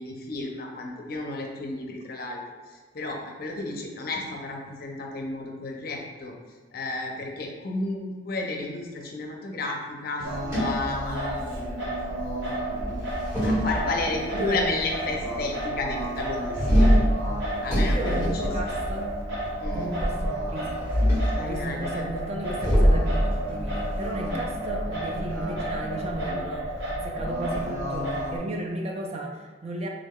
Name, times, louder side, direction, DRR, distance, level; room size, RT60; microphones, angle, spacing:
voice 1, 0.0-6.3 6.7-11.9 13.4-16.9 17.6-18.5 19.6-19.9 21.3-22.1, left 2 dB, 50° left, 1 dB, 0.5 m, -32 dB
sound 1, 10.2-11.6 12.9-14.3 16.5-19.1 20.7-21.4 22.6-25.0, equal, 15° right, 1.2 m, -24 dB
Singing, 10.2-28.4, right 1 dB, 70° right, 0.8 m, -31 dB
voice 2, 14.3-14.7 17.9-19.1 19.7-29.9, right 1 dB, 30° right, 1 dB, 0.4 m, -34 dB
3.5 x 2.3 x 3.6 m, 1.4 s
head